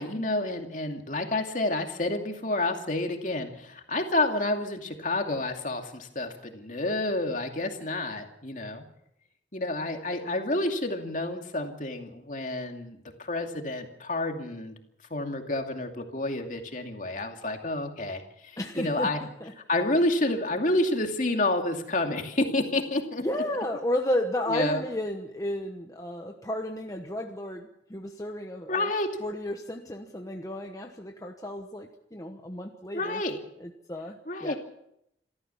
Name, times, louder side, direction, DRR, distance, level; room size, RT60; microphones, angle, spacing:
voice 1, 0.0-8.8 9.5-14.7 15.1-19.2 19.7-23.2 24.5-24.8 28.7-29.1 32.9-33.4 34.3-34.6, left 2 dB, 45° left, 4 dB, 2.5 m, -29 dB
voice 2, 18.6-19.1 19.4-19.5 23.2-28.9 29.2-33.2 33.6-34.5, left 1 dB, 20° left, 3 dB, 1.1 m, -33 dB
27.5 x 13.5 x 7.1 m, 0.78 s
head